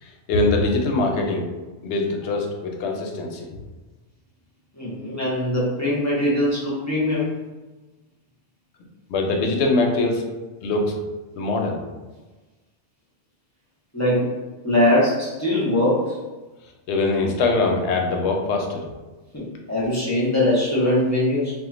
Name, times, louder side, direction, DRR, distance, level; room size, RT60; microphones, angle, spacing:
voice 1, 0.0-1.5 1.8-3.6 9.1-10.2 10.6-10.9 11.4-11.8 16.9-18.9, left 3 dB, 75° left, 1 dB, 0.8 m, -22 dB
voice 2, 4.8-7.3 13.9-14.3 14.6-16.2 19.3-21.5, left 1 dB, 20° left, -7 dB, 0.6 m, -21 dB
2.4 x 2.1 x 3.7 m, 1.2 s
omnidirectional pair, 1.2 m